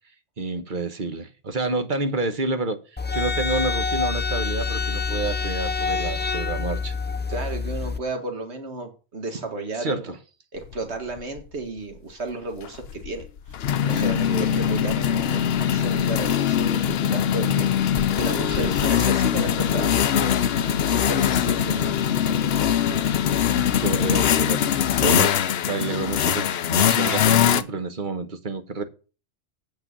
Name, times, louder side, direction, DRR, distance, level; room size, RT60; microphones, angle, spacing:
voice 1, 0.4-6.9 9.8-10.2 14.3-14.6 18.6-18.8 22.9-23.0 23.6-28.8, right 3 dB, 45° right, 1.3 m, -29 dB
sound 1, 3.0-8.0, left 4 dB, 20° left, 0.3 m, -26 dB
voice 2, 7.3-10.0 10.5-13.2 13.8-23.0, right 2 dB, 75° right, 1.9 m, -34 dB
sound 2, 10.7-10.8 11.2-11.4 12.6-27.6, left 9 dB, 70° left, 0.9 m, -22 dB
8.8 x 6.4 x 6.8 m
omnidirectional pair, 1.1 m